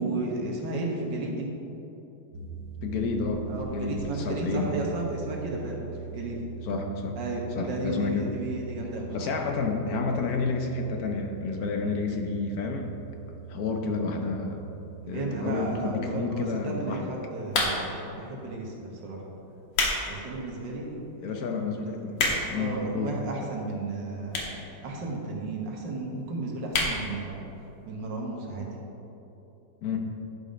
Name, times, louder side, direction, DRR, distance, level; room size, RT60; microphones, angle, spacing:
voice 1, 0.0-1.5 3.5-6.4 7.2-9.3 15.0-19.2 20.1-21.0 21.7-21.9 22.5-24.4 24.8-27.4 27.9-28.7, right 2 dB, 80° right, -1 dB, 2.0 m, -33 dB
sound 1, 2.3-15.8, right 7 dB, 65° right, 1.6 m, -42 dB
voice 2, 2.8-3.4 3.7-4.7 6.6-7.2 7.5-8.3 9.1-12.9 13.3-14.7 15.1-17.1 21.2-22.2 22.5-23.1 29.8-30.0, left 4 dB, 65° left, 3 dB, 1.2 m, -30 dB
sound 2, 17.5-18.0 18.8-19.0 19.5-20.0 20.4-20.5 21.2-21.3 21.5-21.6 21.8-22.6 23.4-23.5 24.3-24.6 24.9-25.0 25.2-25.3 25.5-25.6 26.0-26.2 26.7-27.0 27.4-27.5 27.6-27.7, left 2 dB, 85° left, 2.0 m, -27 dB
10.5 x 5.4 x 5.1 m, 3.0 s
omnidirectional pair, 1.9 m